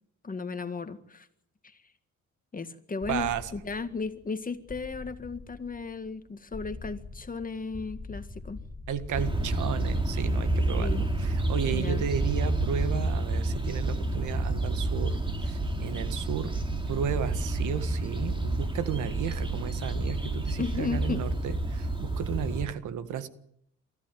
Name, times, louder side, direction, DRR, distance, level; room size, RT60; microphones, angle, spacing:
voice 1, 0.2-1.3 1.6-1.8 2.5-8.6 10.8-11.1 11.7-12.0 20.6-21.3, left 4 dB, 30° left, 9 dB, 1.9 m, -35 dB
sound 1, 3.0-18.8, left 3 dB, 10° left, 7.0 m, -47 dB
voice 2, 3.1-3.5 8.9-16.5 16.9-23.3, right 9 dB, 80° right, 12 dB, 1.7 m, -34 dB
sound 2, 9.1-22.7, right 2 dB, 15° right, 2.8 m, -29 dB
23.5 x 14.5 x 9.2 m, 0.74 s
cardioid pair, 90°, 30 cm